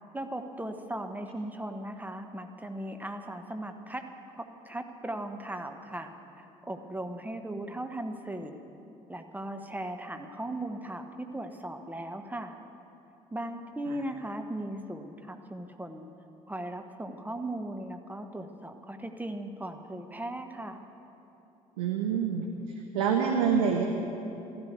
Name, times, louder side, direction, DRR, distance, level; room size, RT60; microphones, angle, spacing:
voice 1, 0.1-8.6 9.1-12.5 13.3-16.1 16.5-20.8, right 1 dB, 10° right, 6 dB, 1.1 m, -38 dB
voice 2, 21.8-22.4 22.9-23.8, right 7 dB, 70° right, 2 dB, 1.0 m, -26 dB
15.0 x 11.5 x 8.2 m, 2.9 s
figure-of-eight pair, 50°, 18 cm